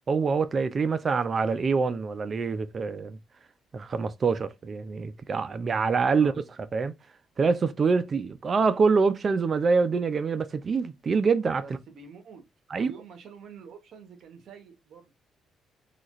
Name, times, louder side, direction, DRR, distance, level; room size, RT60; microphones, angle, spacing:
voice 1, 0.1-3.2 3.7-6.3 6.6-6.9 7.4-11.6 12.7-12.9, right 4 dB, 40° right, 0.5 m, -25 dB
voice 2, 6.0-6.4 11.6-12.5 12.7-15.2, right 5 dB, 70° right, 1.1 m, -47 dB
4.0 x 2.4 x 3.0 m
cardioid pair, 90°, 0 cm